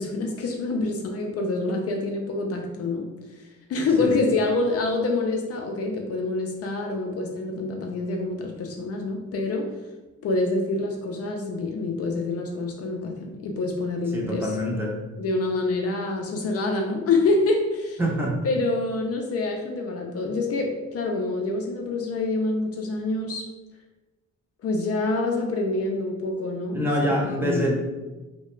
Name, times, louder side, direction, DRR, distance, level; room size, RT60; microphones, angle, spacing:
voice 1, 0.0-3.4 3.7-9.7 10.2-14.5 15.2-18.0 18.4-23.5 24.6-27.7, left 3 dB, 55° left, 2 dB, 0.4 m, -26 dB
voice 2, 14.1-14.9 18.0-18.4 26.7-27.7, equal, 5° right, -3 dB, 0.6 m, -25 dB
2.3 x 2.1 x 3.0 m, 1.1 s
cardioid pair, 90°, 30 cm